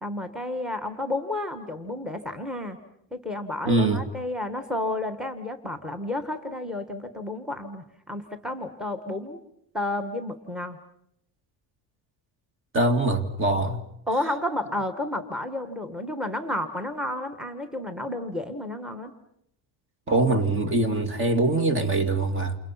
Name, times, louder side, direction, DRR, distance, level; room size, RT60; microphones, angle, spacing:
voice 1, 0.0-2.8 3.1-9.4 9.7-10.8 14.1-19.1, left 1 dB, ahead, 1.6 m, -31 dB
voice 2, 3.7-4.0 12.7-13.8 20.1-22.6, right 2 dB, 30° right, 2.0 m, -23 dB
29.5 x 28.5 x 5.8 m
cardioid pair, 160°, 40 cm